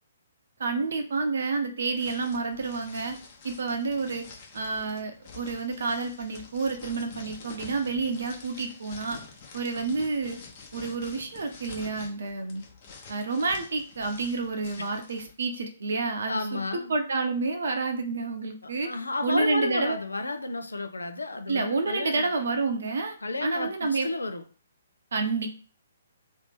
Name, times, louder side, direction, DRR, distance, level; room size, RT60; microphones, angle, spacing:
voice 1, 0.6-3.2 3.4-4.3 4.5-9.2 9.5-10.4 10.7-12.6 13.1-18.9 19.2-20.0 21.5-24.1 25.1-25.5, right 4 dB, 65° right, 5 dB, 0.7 m, -29 dB
sound 1, 1.9-15.3, left 5 dB, 40° left, 1.0 m, -48 dB
voice 2, 16.3-16.9 18.6-22.2 23.2-24.4, left 2 dB, 80° left, 7 dB, 0.6 m, -32 dB
3.0 x 2.7 x 3.5 m, 0.40 s
figure-of-eight pair, 130°, 0 cm